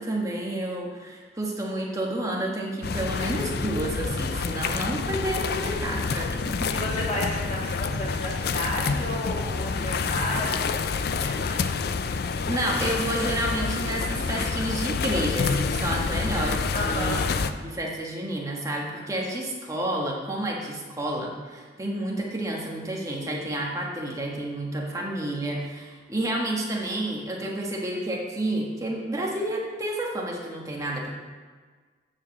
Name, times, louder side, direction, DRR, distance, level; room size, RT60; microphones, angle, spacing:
voice 1, 0.0-6.7 12.2-31.1, right 1 dB, 20° right, -2 dB, 1.4 m, -30 dB
sound 1, 2.8-17.5, left 5 dB, 55° left, 0.4 m, -28 dB
sound 2, 6.5-8.4 8.8-8.9 9.3-9.4 9.6-10.7 10.9-12.3, equal, 45° right, 0.9 m, -41 dB
voice 2, 6.7-11.7 16.7-17.2, left 1 dB, 35° left, -4 dB, 2.2 m, -32 dB
8.5 x 4.9 x 7.2 m, 1.5 s
head